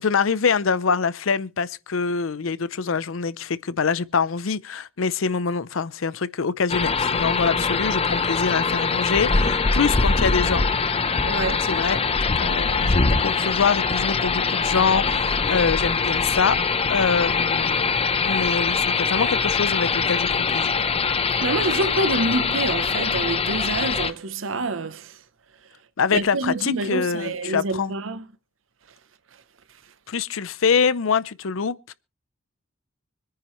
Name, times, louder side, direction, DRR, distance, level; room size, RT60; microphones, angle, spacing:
voice 1, 0.0-10.7 11.6-12.0 12.4-16.6 16.9-17.9 18.2-20.7 26.0-27.9 30.1-31.9, left 5 dB, 80° left, 0.6 m, -24 dB
sound 1, 6.7-24.1, left 4 dB, 30° left, 0.8 m, -23 dB
voice 2, 11.3-11.7 21.4-25.1 26.1-28.2, right 2 dB, 75° right, 0.8 m, -27 dB
25.0 x 9.6 x 3.1 m
head